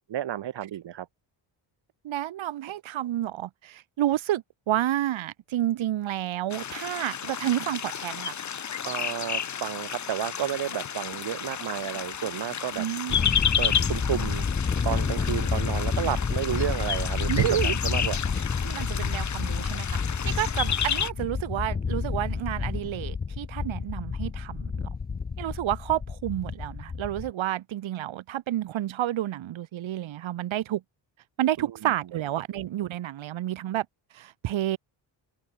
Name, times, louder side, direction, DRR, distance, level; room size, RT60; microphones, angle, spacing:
voice 1, 0.1-1.1 8.8-12.9 13.6-14.5 14.8-18.2 31.6-31.9, right 11 dB, 65° right, 5.6 m, -32 dB
voice 2, 2.0-8.3 12.8-13.2 17.3-17.7 18.6-20.0 20.2-24.9 25.4-30.8 31.4-33.9 34.1-34.8, right 13 dB, 85° right, 4.2 m, -30 dB
sound 1, 6.5-21.1, left 8 dB, 40° left, 2.3 m, -31 dB
Thunder, 13.1-27.3, left 5 dB, 20° left, 1.1 m, -29 dB
cardioid pair, 175°, 46 cm